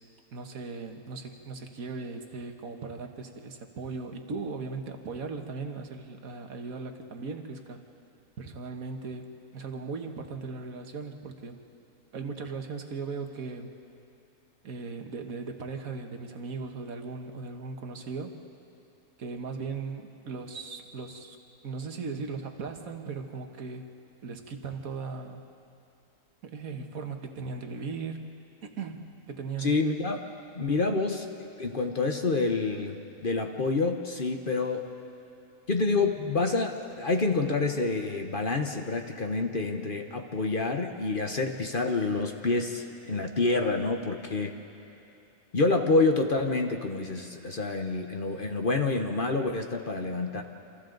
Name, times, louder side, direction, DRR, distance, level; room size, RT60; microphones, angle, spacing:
voice 1, 0.3-7.8 8.4-11.6 12.1-13.7 14.6-18.4 19.2-21.4 21.6-23.9 24.2-25.4 26.4-28.3 28.6-29.7 30.9-31.0, right 4 dB, 60° right, 5 dB, 1.7 m, -38 dB
voice 2, 29.6-30.2 30.5-31.3 31.6-35.0 35.7-44.5 45.5-50.4, left 3 dB, 40° left, 4 dB, 1.0 m, -28 dB
28.0 x 26.5 x 3.9 m, 2.9 s
omnidirectional pair, 1.7 m